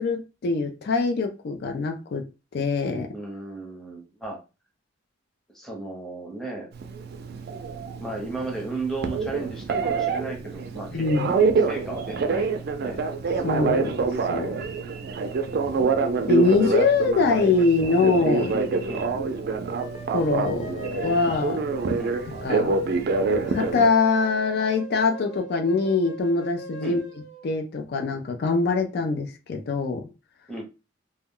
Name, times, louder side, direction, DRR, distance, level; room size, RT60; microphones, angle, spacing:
voice 1, 0.0-2.3 2.5-3.1 10.9-11.3 13.4-14.6 16.3-18.6 20.1-20.7 21.0-21.6 22.4-22.7 23.5-27.0 27.4-30.1, left 4 dB, 55° left, 4 dB, 0.4 m, -23 dB
voice 2, 3.1-4.4 5.5-6.7 8.0-13.0 14.6-14.7 18.9-19.3 22.0-22.2 26.8-27.0 30.5-30.6, right 2 dB, 5° left, -1 dB, 0.7 m, -35 dB
Telephone, 6.7-23.9, right 4 dB, 55° right, 0.4 m, -26 dB
sound 1, 19.2-27.6, left 1 dB, 80° left, 1.2 m, -41 dB
2.2 x 2.1 x 3.6 m, 0.29 s
head